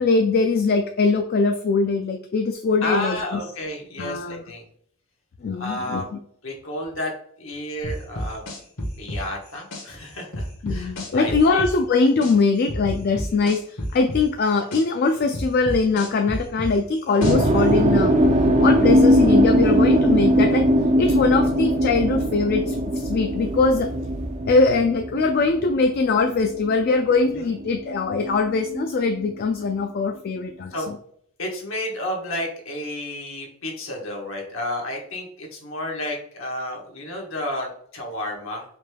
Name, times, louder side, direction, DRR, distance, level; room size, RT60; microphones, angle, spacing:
voice 1, 0.0-3.4 4.0-4.4 5.4-6.2 10.6-18.2 18.6-20.7 21.0-23.9 24.4-31.0, left 4 dB, 45° left, 5 dB, 0.3 m, -22 dB
voice 2, 2.8-4.7 5.6-6.1 6.4-7.1 7.4-8.4 9.0-11.6 17.2-17.3 27.4-27.5 30.7-30.9 31.4-38.6, left 1 dB, 60° left, 0 dB, 1.3 m, -31 dB
sound 1, 7.8-9.8 10.3-12.3 12.7-14.8 15.3-17.6, equal, 80° left, 1.3 m, -30 dB
sound 2, 17.2-27.3 27.6-29.2, equal, 30° right, 0.4 m, -20 dB
5.1 x 3.3 x 2.2 m, 0.64 s
head